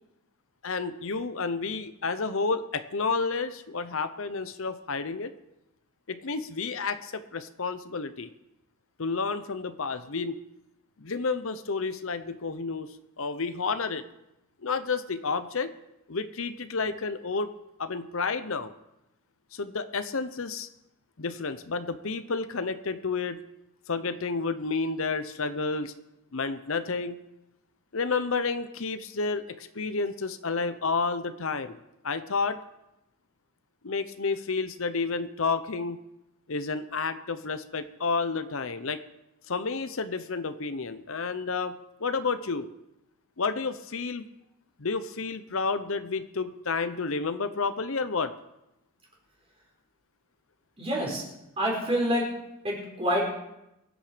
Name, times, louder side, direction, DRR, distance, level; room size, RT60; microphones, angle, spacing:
voice 1, 0.6-5.3 6.1-8.3 9.0-10.4 11.0-12.9 13.2-14.0 14.6-15.7 16.1-17.5 17.8-18.7 19.5-20.7 21.2-23.4 23.9-25.9 26.3-27.2 27.9-32.6 33.8-36.0 36.5-39.0 39.5-42.7 43.4-44.2 44.8-48.3, left 4 dB, 60° left, 10 dB, 0.8 m, -30 dB
voice 2, 50.8-51.2 51.6-52.3 52.6-53.2, equal, 25° right, -1 dB, 4.4 m, -27 dB
23.5 x 9.1 x 5.1 m, 0.88 s
head